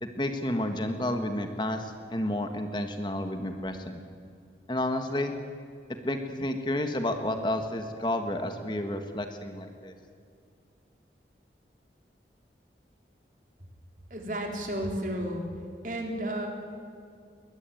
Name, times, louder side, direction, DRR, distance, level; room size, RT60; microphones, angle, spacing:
voice 1, 0.0-4.0 4.7-5.3 6.0-9.9, left 1 dB, 25° left, 6 dB, 1.5 m, -31 dB
voice 2, 14.1-15.4 15.8-16.5, right 1 dB, 50° right, 2 dB, 4.0 m, -32 dB
21.5 x 20.5 x 9.1 m, 2.3 s
head